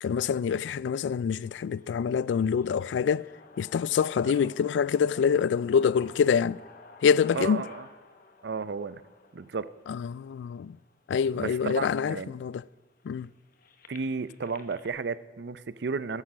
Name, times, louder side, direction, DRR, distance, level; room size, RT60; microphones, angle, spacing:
voice 1, 0.0-3.3 3.6-6.6 7.0-7.6 9.9-10.8 11.1-12.6 13.1-13.3, left 7 dB, 80° left, 0.3 m, -26 dB
sound 1, 1.4-11.4 12.1-12.2 12.4-14.9, left 3 dB, 55° left, 1.2 m, -52 dB
voice 2, 7.3-7.9 8.4-9.0 9.3-9.7 11.4-12.3 13.9-16.2, right 4 dB, 65° right, 0.5 m, -33 dB
13.5 x 9.7 x 6.0 m
head